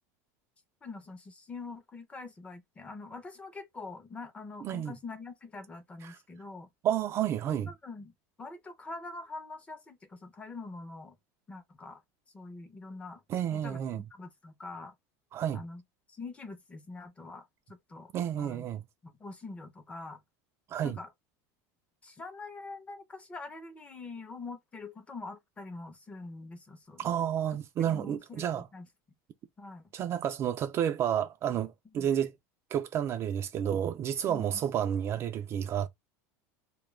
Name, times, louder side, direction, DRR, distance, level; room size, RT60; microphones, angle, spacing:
voice 1, 0.8-6.7 7.7-8.1 8.4-11.2 11.5-12.0 12.3-13.2 13.5-14.9 15.5-15.8 16.1-18.1 18.4-18.6 19.0-20.2 20.8-21.1 22.0-27.1 27.8-28.9 29.6-29.9 32.0-32.1 34.2-34.6, left 3 dB, 15° left, 0.6 m, -44 dB
voice 2, 4.6-4.9 6.0-6.2 6.8-7.7 13.3-14.0 15.3-15.6 18.1-18.8 20.7-21.0 27.0-28.7 29.9-32.3 32.7-35.9, right 10 dB, 30° right, 0.3 m, -30 dB
2.2 x 2.2 x 3.1 m
supercardioid pair, 150°, 8 cm